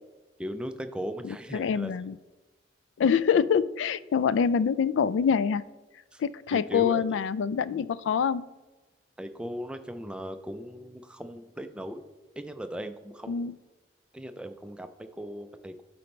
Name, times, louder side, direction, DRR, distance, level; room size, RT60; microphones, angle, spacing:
voice 1, 0.4-1.9 6.1-6.2 6.5-7.2 9.2-12.0 12.4-13.6 14.1-15.8, equal, 5° right, 7 dB, 0.4 m, -38 dB
voice 2, 1.2-2.2 3.0-5.6 6.2-8.4 13.3-13.5, left 7 dB, 75° left, 17 dB, 0.3 m, -25 dB
12.0 x 4.3 x 3.2 m, 1.2 s
head